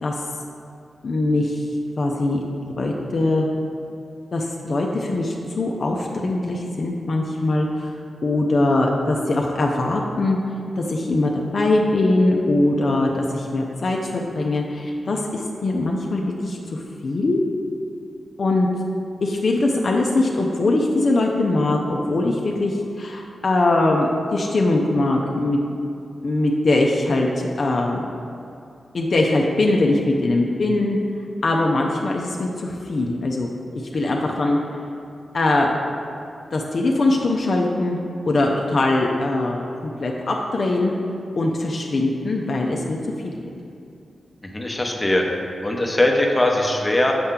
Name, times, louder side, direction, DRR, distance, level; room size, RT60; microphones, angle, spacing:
voice 1, 1.0-1.6 2.0-3.5 4.3-7.9 8.2-10.4 10.8-17.4 18.4-18.7 19.2-25.6 26.2-28.1 28.9-31.0 31.4-34.6 35.3-35.7 36.5-38.0 38.3-40.9 41.4-43.5, left 2 dB, 60° left, 0 dB, 0.5 m, -21 dB
voice 2, 44.4-45.3 45.6-47.1, left 1 dB, 20° left, 1 dB, 0.8 m, -20 dB
6.8 x 4.3 x 3.7 m, 2.6 s
cardioid pair, 60°, 0 cm